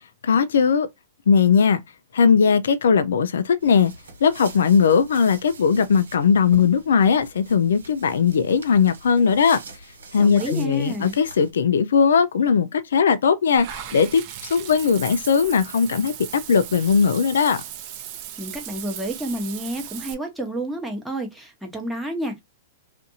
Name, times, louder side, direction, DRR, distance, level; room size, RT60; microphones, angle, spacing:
voice 1, 0.2-0.9 1.3-1.8 2.1-3.9 4.2-9.6 10.1-16.1 16.5-17.6, left 6 dB, 80° left, 0.3 m, -19 dB
sound 1, 3.6-11.5, right 3 dB, 90° right, 1.2 m, -43 dB
voice 2, 10.2-11.2 18.4-22.4, right 1 dB, ahead, 0.9 m, -30 dB
Water / Bathtub (filling or washing), 13.6-20.1, right 10 dB, 45° right, 0.6 m, -37 dB
2.5 x 2.5 x 2.6 m
hypercardioid pair, 125°, 0 cm